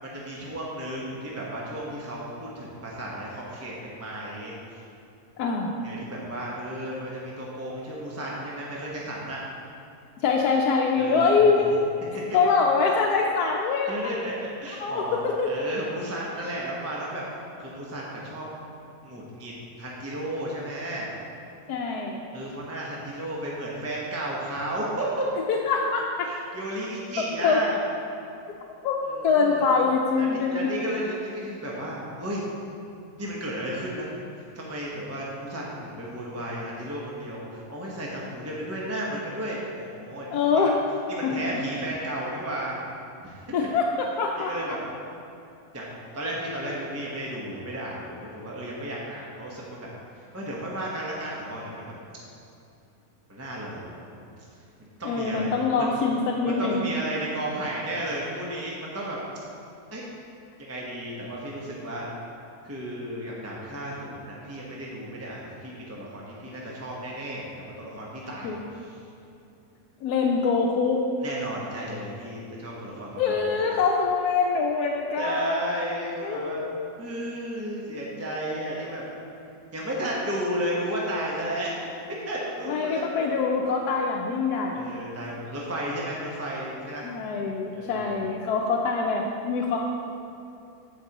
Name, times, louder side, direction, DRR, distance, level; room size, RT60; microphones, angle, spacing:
voice 1, 0.0-4.8 5.8-9.4 11.0-11.3 13.9-17.2 17.6-18.5 19.0-19.5 19.8-21.1 22.3-25.2 26.2-27.8 29.0-29.6 30.2-32.4 33.2-34.1 34.3-40.3 40.5-40.7 41.1-42.8 43.2-43.4 44.4-44.8 45.7-45.9 46.1-49.9 50.1-51.9 53.3-54.0 54.8-55.5 56.4-59.2 59.9-60.0 60.6-62.0 62.6-69.0 71.2-73.6 75.2-76.6 77.0-79.0 79.7-81.7 82.3-83.0 84.7-87.1 87.7-88.1, right 1 dB, 10° right, -4 dB, 0.8 m, -33 dB
voice 2, 5.4-5.8 10.2-11.8 12.3-14.2 14.8-15.5 21.7-22.2 25.5-26.4 27.4-27.6 28.8-29.0 29.2-30.7 40.3-40.7 41.2-41.3 43.5-44.8 55.0-56.8 68.4-68.6 70.0-71.0 73.2-75.6 76.2-76.9 82.7-84.8 87.0-89.8, left 4 dB, 85° left, 0 dB, 1.1 m, -24 dB
14.5 x 5.2 x 2.9 m, 2.8 s
omnidirectional pair, 1.6 m